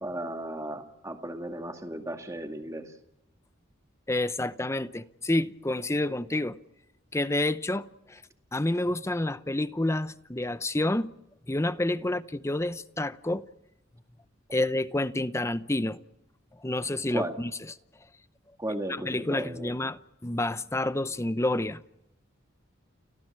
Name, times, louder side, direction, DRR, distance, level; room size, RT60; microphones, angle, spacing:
voice 1, 0.0-2.9 12.0-12.2 17.1-17.4 18.6-19.7, right 1 dB, 15° right, 2.2 m, -35 dB
voice 2, 4.1-6.6 7.1-8.2 8.5-11.1 11.5-13.4 14.5-16.0 16.6-17.5 18.9-21.8, left 1 dB, 15° left, 0.7 m, -29 dB
29.5 x 14.5 x 7.5 m
head